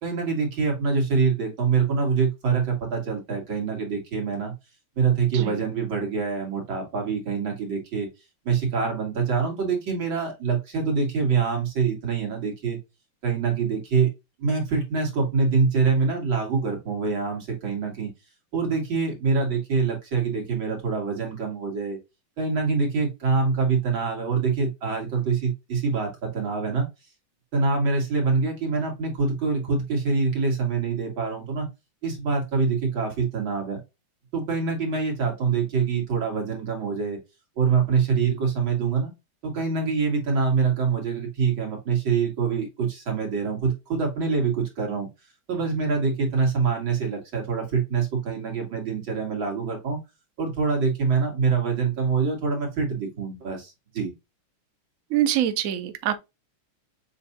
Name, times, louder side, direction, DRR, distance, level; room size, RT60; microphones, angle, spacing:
voice 1, 0.0-4.5 5.0-8.1 8.4-12.8 13.2-14.1 14.4-18.1 18.5-22.0 22.4-26.8 27.5-31.7 32.0-33.8 34.3-37.2 37.6-39.1 39.4-45.1 45.5-50.0 50.4-54.1, right 5 dB, 65° right, 2.8 m, -25 dB
voice 2, 55.1-56.2, right 11 dB, 85° right, 0.7 m, -24 dB
7.2 x 2.6 x 2.7 m
omnidirectional pair, 2.3 m